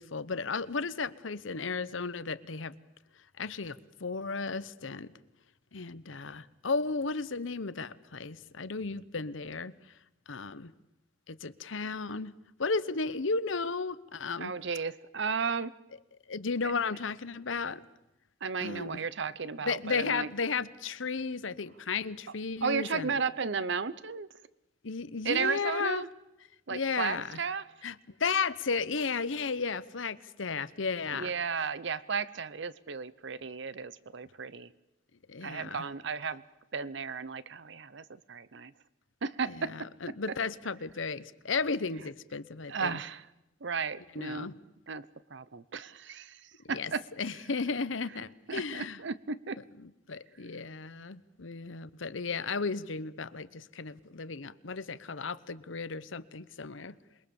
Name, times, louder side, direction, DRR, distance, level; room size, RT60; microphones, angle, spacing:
voice 1, 0.0-2.8 3.4-5.1 5.7-9.7 10.3-10.7 11.3-12.3 12.6-14.5 16.3-17.8 18.6-19.0 19.6-23.2 24.8-26.0 26.7-27.4 27.8-31.3 35.3-35.8 39.5-43.0 44.1-44.5 46.6-46.9 47.2-49.0 49.8-56.9, left 4 dB, 75° left, 15 dB, 1.0 m, -34 dB
voice 2, 14.4-15.7 18.4-20.3 22.6-24.3 25.2-26.1 26.7-27.6 31.1-34.7 35.4-36.4 36.7-38.7 39.2-39.9 42.7-43.3 43.6-44.5 44.9-47.0 48.5-49.6, right 5 dB, 65° right, 17 dB, 0.8 m, -34 dB
27.5 x 22.0 x 7.1 m, 0.92 s
head